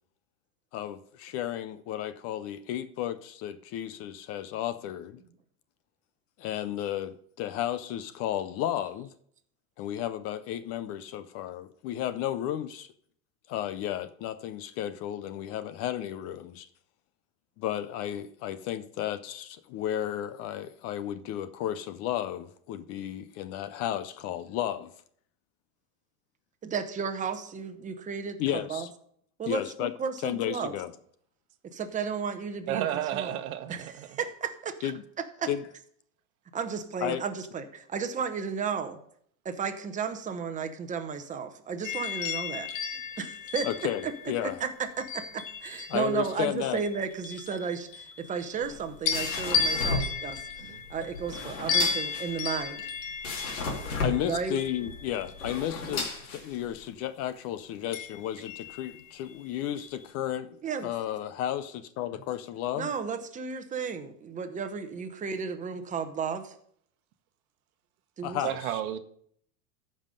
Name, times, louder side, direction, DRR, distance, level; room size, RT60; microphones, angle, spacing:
voice 1, 0.7-5.2 6.4-9.1 9.8-12.9 13.5-16.7 17.6-24.9 28.4-28.9 29.5-29.9 30.2-30.9 34.8-35.0 35.5-35.6 37.0-37.2 43.6-44.6 45.9-46.8 53.5-62.9 68.2-68.6, left 11 dB, 35° left, 0.4 m, -33 dB
voice 2, 26.6-28.9 29.4-30.7 31.7-32.9 33.1-33.4 33.7-33.9 34.2-34.9 35.4-35.5 36.5-39.0 39.4-42.7 43.2-43.7 44.0-44.1 44.4-50.4 50.9-52.8 54.3-54.6 60.6-60.9 62.7-66.5 68.2-68.4, right 6 dB, 20° right, 1.0 m, -33 dB
voice 3, 32.7-34.2 50.6-50.9 68.4-69.0, right 11 dB, 80° right, 1.1 m, -32 dB
sound 1, 41.8-46.2 46.8-48.7 49.1-56.0 57.9-59.3 59.8-60.0, left 6 dB, 65° left, 1.8 m, -34 dB
sound 2, 48.5-56.9, left 3 dB, 90° left, 2.6 m, -35 dB
14.0 x 5.4 x 5.3 m
supercardioid pair, 135°, 43 cm